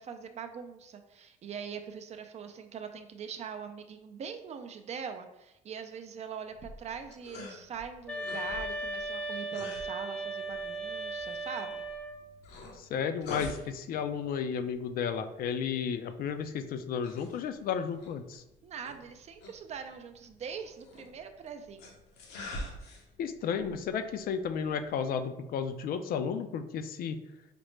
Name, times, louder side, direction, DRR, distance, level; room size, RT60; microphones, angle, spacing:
voice 1, 0.0-11.8 18.6-21.9, right 6 dB, 40° right, 7 dB, 0.4 m, -42 dB
sound 1, 6.5-25.2, left 1 dB, 85° left, 0.9 m, -48 dB
sound 2, 8.1-12.2, right 2 dB, 5° left, 0.6 m, -37 dB
voice 2, 12.7-18.4 23.2-27.2, left 7 dB, 60° left, 8 dB, 0.4 m, -33 dB
5.0 x 2.1 x 3.1 m, 0.90 s
cardioid pair, 110°, 17 cm